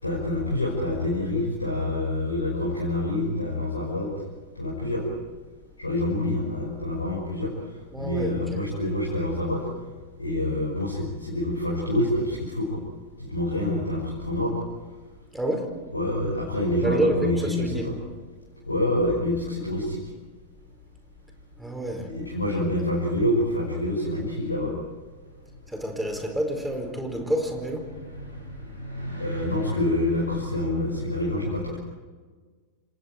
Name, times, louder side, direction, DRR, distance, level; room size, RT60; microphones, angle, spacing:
voice 1, 0.0-4.1 4.6-5.1 5.8-7.5 8.0-9.7 10.2-12.8 13.2-14.5 15.9-17.9 18.7-20.0 22.0-24.7 28.2-31.8, left 1 dB, 80° left, -3 dB, 5.5 m, -27 dB
voice 2, 7.9-8.6 15.3-15.7 16.8-17.9 21.6-22.1 25.7-27.9, equal, 5° right, 4 dB, 4.8 m, -28 dB
29.0 x 27.0 x 4.5 m, 1.4 s
figure-of-eight pair, 90°, 0 cm